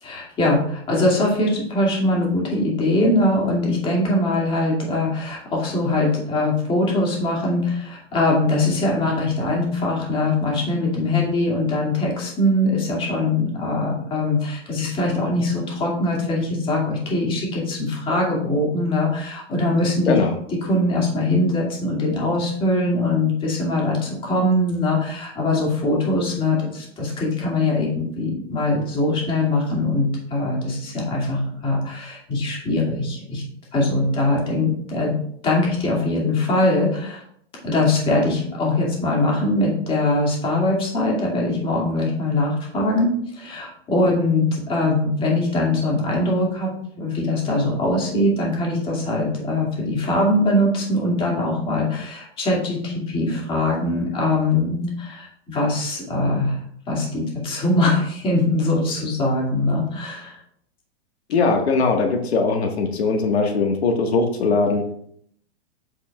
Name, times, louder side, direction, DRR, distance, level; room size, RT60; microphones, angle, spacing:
voice 1, 0.0-20.2 20.6-33.4 33.7-35.1 35.4-37.2 37.6-46.7 47.0-56.6 56.9-60.4, left 2 dB, 15° left, -3 dB, 2.3 m, -22 dB
voice 2, 61.3-64.8, left 4 dB, 80° left, 3 dB, 1.6 m, -20 dB
8.2 x 7.9 x 2.4 m, 0.66 s
hypercardioid pair, 155°, 32 cm